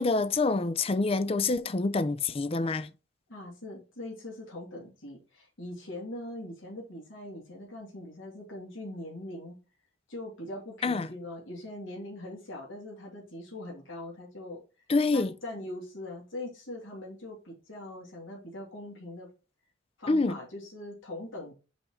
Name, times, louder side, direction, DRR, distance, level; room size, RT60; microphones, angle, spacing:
voice 1, 0.0-2.9 10.8-11.1 14.9-15.3 20.1-20.4, left 3 dB, 30° left, 0.4 m, -26 dB
voice 2, 3.3-9.6 10.1-14.6 15.1-19.3 20.0-21.5, left 1 dB, 90° left, 2.8 m, -41 dB
5.5 x 4.5 x 4.5 m
head